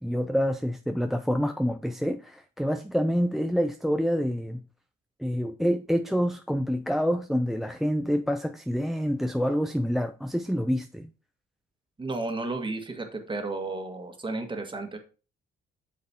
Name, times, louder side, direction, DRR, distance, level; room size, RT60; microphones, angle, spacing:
voice 1, 0.0-4.6 5.2-11.1, equal, ahead, 0.5 m, -27 dB
voice 2, 12.0-15.0, right 2 dB, 25° right, 1.8 m, -33 dB
8.2 x 6.4 x 2.9 m
cardioid pair, 90°, 20 cm